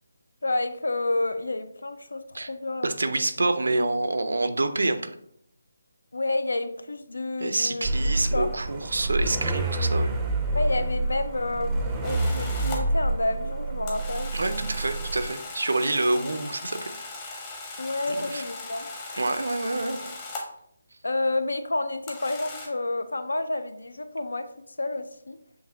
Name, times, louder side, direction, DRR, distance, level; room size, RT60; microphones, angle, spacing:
voice 1, 0.4-2.9 3.2-3.3 6.1-8.5 10.5-14.3 17.8-18.9 21.0-24.5 24.8-25.4, left 2 dB, 80° left, 10 dB, 0.4 m, -29 dB
voice 2, 2.8-5.1 7.4-10.1 14.3-16.9 18.1-18.4 19.1-20.1, right 2 dB, 75° right, 9 dB, 0.5 m, -27 dB
sound 1, 7.8-15.3, right 2 dB, 15° right, 0.5 m, -28 dB
sound 2, 12.0-12.8 13.9-20.6 22.1-22.7, left 3 dB, 25° left, 0.8 m, -38 dB
6.5 x 2.7 x 2.7 m, 0.71 s
figure-of-eight pair, 155°, 0 cm